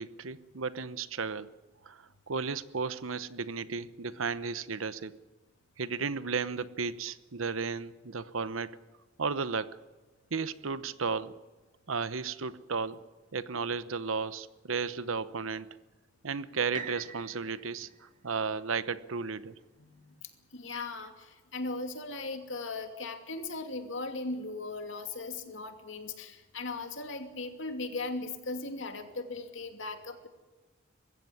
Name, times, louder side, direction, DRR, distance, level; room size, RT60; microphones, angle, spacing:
voice 1, 0.0-1.5 1.8-5.1 5.8-8.8 9.2-9.8 10.3-11.4 11.9-13.0 13.3-15.7 16.2-17.9 18.2-19.6, right 5 dB, 90° right, 15 dB, 0.9 m, -34 dB
sound 1, 16.7-20.7 21.3-21.4, right 5 dB, 40° right, 2.3 m, -47 dB
voice 2, 19.8-20.1 20.5-30.3, left 3 dB, 65° left, 6 dB, 2.5 m, -38 dB
21.5 x 16.0 x 9.7 m, 1.3 s
head